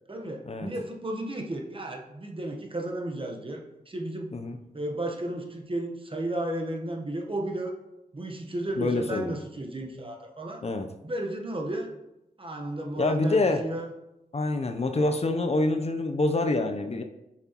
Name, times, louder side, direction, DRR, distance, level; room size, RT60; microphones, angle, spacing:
voice 1, 0.1-4.4 4.7-7.7 8.1-10.6 11.0-11.9 12.4-13.9, right 1 dB, 35° right, 2 dB, 1.1 m, -33 dB
voice 2, 8.8-9.4 10.6-10.9 13.0-13.6 14.3-17.0, left 2 dB, 40° left, 6 dB, 0.7 m, -26 dB
7.6 x 5.9 x 3.0 m, 0.92 s
cardioid pair, 45°, 16 cm